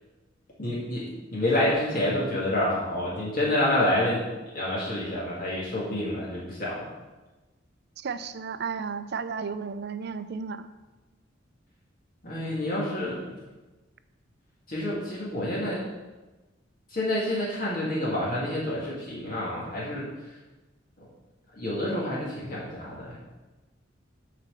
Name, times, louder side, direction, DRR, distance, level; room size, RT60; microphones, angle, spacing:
voice 1, 0.6-6.9 12.2-13.4 14.7-15.8 16.9-20.4 21.0-21.1 21.5-23.2, left 1 dB, 45° left, -6 dB, 1.9 m, -28 dB
voice 2, 8.0-10.7, right 5 dB, 55° right, 11 dB, 0.5 m, -33 dB
8.2 x 4.2 x 6.7 m, 1.1 s
head